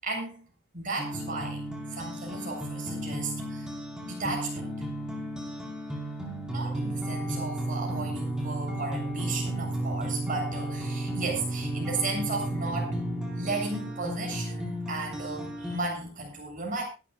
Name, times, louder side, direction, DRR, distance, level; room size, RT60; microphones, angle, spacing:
voice 1, 0.0-0.4 0.7-1.6 1.9-3.7 4.0-4.6 6.5-13.0 13.3-16.8, right 3 dB, 45° right, 1 dB, 7.8 m, -34 dB
sound 1, 1.0-15.8, right 1 dB, 5° right, 5.0 m, -33 dB
23.5 x 12.5 x 2.5 m, 0.31 s
head